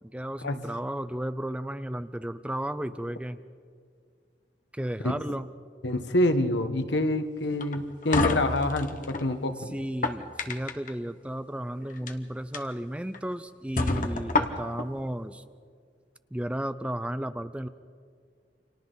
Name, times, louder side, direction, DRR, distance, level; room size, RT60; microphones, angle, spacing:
voice 1, 0.0-3.4 4.7-5.5 9.7-15.4 16.3-17.7, right 1 dB, 5° right, 12 dB, 0.5 m, -33 dB
voice 2, 5.8-9.5, left 1 dB, 80° left, 8 dB, 1.3 m, -26 dB
sound 1, 7.6-9.3 9.8-10.9 11.9-12.1 12.5-12.6 13.1-13.2 13.8-14.9, left 3 dB, 50° left, 1.2 m, -28 dB
29.5 x 26.0 x 4.0 m, 2.1 s
head